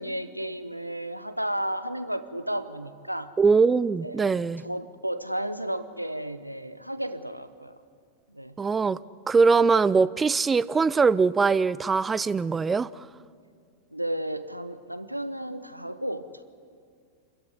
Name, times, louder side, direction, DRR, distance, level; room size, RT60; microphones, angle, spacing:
voice 1, 0.0-3.3 4.0-4.3 4.6-7.8 8.3-8.6 13.9-16.4, right 1 dB, 90° right, 0.9 m, -33 dB
voice 2, 3.4-4.6 8.6-9.0 9.3-13.1, right 4 dB, 15° right, 0.5 m, -22 dB
26.5 x 14.5 x 9.9 m
figure-of-eight pair, 90°, 0 cm